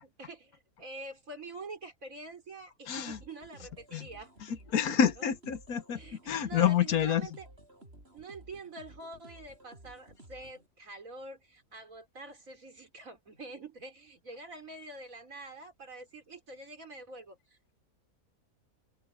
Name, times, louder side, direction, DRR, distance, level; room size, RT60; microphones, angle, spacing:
voice 1, 0.0-4.3 4.9-5.3 5.9-7.5 8.1-17.6, right 2 dB, 60° right, 4.4 m, -46 dB
voice 2, 2.9-3.2 3.9-4.1 4.7-6.0 6.3-7.2, left 8 dB, 75° left, 1.5 m, -27 dB
sound 1, 3.1-10.7, right 1 dB, 40° right, 6.9 m, -54 dB
open air
omnidirectional pair, 1.6 m